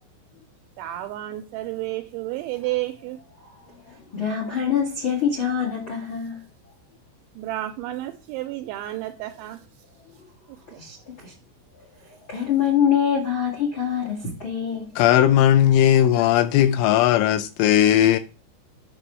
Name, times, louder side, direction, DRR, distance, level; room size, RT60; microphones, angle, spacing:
voice 1, 0.8-3.2 7.4-9.6 10.7-10.8, right 15 dB, 85° right, 2.7 m, -31 dB
voice 2, 3.4-6.4 10.7-11.3 12.3-14.9, left 8 dB, 65° left, 1.2 m, -25 dB
voice 3, 15.0-18.2, left 11 dB, 85° left, 2.8 m, -17 dB
9.5 x 6.1 x 3.1 m
omnidirectional pair, 6.0 m